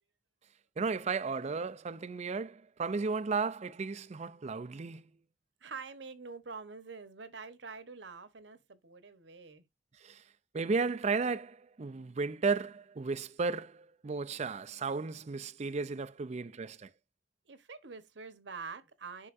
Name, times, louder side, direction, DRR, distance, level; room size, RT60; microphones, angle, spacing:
voice 1, 0.8-5.1 10.0-10.2 10.5-16.9, right 4 dB, 35° right, 0.5 m, -34 dB
voice 2, 5.6-9.6 17.5-19.3, right 4 dB, 70° right, 1.1 m, -46 dB
9.7 x 5.7 x 2.6 m
head